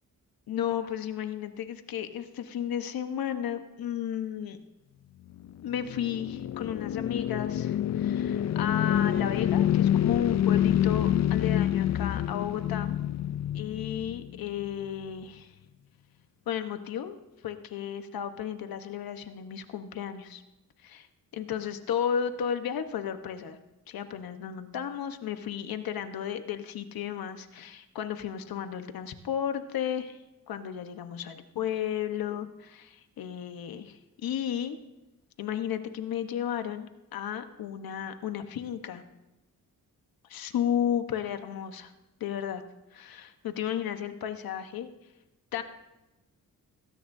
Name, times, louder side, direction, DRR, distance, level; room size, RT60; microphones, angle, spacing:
voice 1, 0.5-4.6 5.6-13.0 13.5-15.5 16.5-17.2 17.4-20.4 20.8-21.1 21.3-23.6 23.9-30.2 30.5-34.8 35.4-39.0 40.3-41.9 42.2-42.6 42.9-44.9 45.5-45.6, left 9 dB, 85° left, 8 dB, 1.1 m, -33 dB
airplane passing, 5.4-14.7, left 11 dB, 50° left, 0.5 m, -27 dB
20.0 x 17.0 x 2.7 m, 1.0 s
cardioid pair, 85°, 35 cm